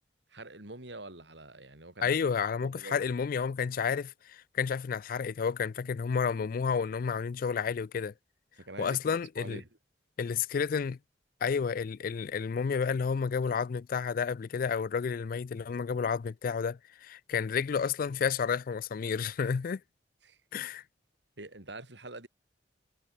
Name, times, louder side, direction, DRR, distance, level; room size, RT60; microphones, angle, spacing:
voice 1, 0.3-2.2 2.6-3.0 8.6-9.7 20.2-20.4 21.4-22.3, right 2 dB, 75° right, 6.2 m, -45 dB
voice 2, 2.0-8.1 8.8-9.6 10.2-11.0 11.4-19.8 20.5-20.8, left 6 dB, 50° left, 0.4 m, -31 dB
head